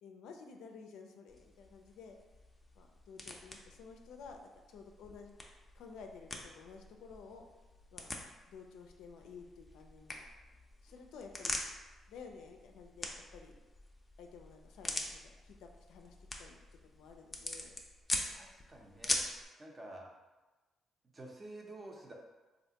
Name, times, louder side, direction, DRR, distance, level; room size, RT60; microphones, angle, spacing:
voice 1, 0.0-2.2 2.8-4.4 4.7-5.3 5.8-7.5 7.9-8.1 8.5-10.2 10.8-11.6 12.1-13.6 14.2-16.6 16.9-17.7, left 5 dB, 85° left, 3 dB, 0.3 m, -53 dB
sound 1, 1.3-19.5, left 2 dB, 20° left, 0.4 m, -44 dB
voice 2, 18.3-19.3 19.6-20.1 21.1-22.1, right 1 dB, 25° right, 0 dB, 0.6 m, -50 dB
3.3 x 2.5 x 2.8 m, 1.2 s
cardioid pair, 90°, 0 cm